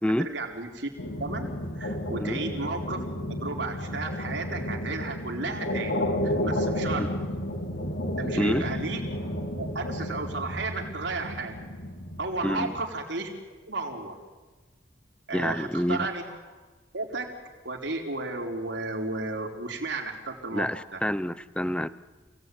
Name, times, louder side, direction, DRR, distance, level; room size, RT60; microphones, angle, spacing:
voice 1, 0.2-0.9 1.2-3.0 3.4-7.1 8.2-9.0 9.6-11.6 12.2-13.3 13.7-14.2 15.3-16.2 16.9-17.3 17.6-20.7 20.9-21.0, right 3 dB, 70° right, 1 dB, 4.3 m, -33 dB
sound 1, 1.0-12.9, equal, 85° left, 3.1 m, -32 dB
voice 2, 12.4-12.7 15.3-16.1 20.5-21.9, equal, 5° left, 15 dB, 0.7 m, -27 dB
28.0 x 18.0 x 9.4 m, 1.3 s
head